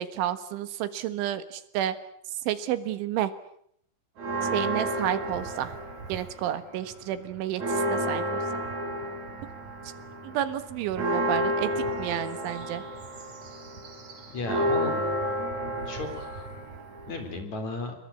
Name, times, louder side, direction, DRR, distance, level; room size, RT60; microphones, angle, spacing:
voice 1, 0.0-2.0 2.5-3.3 4.5-5.7 6.1-8.4 10.3-12.8, right 11 dB, 85° right, 12 dB, 4.0 m, -31 dB
Church bell, 4.2-6.6 6.9-7.0 7.3-17.4, right 1 dB, 40° right, 4.8 m, -31 dB
voice 2, 14.3-15.0 15.9-16.5 17.1-17.9, left 2 dB, 40° left, 7 dB, 4.8 m, -34 dB
26.5 x 22.5 x 8.6 m, 0.69 s
omnidirectional pair, 5.4 m